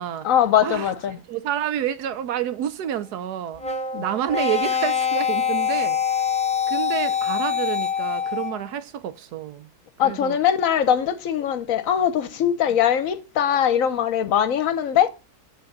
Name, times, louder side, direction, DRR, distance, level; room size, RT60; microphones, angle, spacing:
voice 1, 0.2-1.2 3.9-4.0 10.0-15.1, left 9 dB, 65° left, 1.0 m, -21 dB
voice 2, 1.3-3.6 4.0-6.0 6.7-9.7 10.0-10.4, right 10 dB, 85° right, 1.3 m, -28 dB
sound 1, 3.6-8.7, left 7 dB, 5° left, 0.8 m, -24 dB
8.0 x 4.2 x 6.5 m
omnidirectional pair, 1.7 m